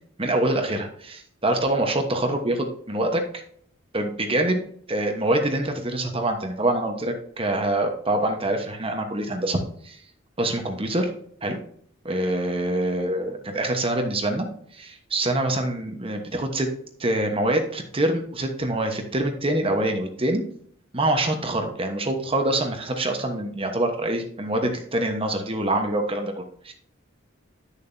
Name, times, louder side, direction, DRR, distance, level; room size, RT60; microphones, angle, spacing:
voice 1, 0.2-3.2 3.9-4.6 4.9-10.0 10.4-11.1 11.4-11.6 12.0-14.5 14.7-16.7 17.0-20.4 20.9-26.7, right 1 dB, 25° right, 4 dB, 1.1 m, -25 dB
11.0 x 6.9 x 2.7 m, 0.62 s
head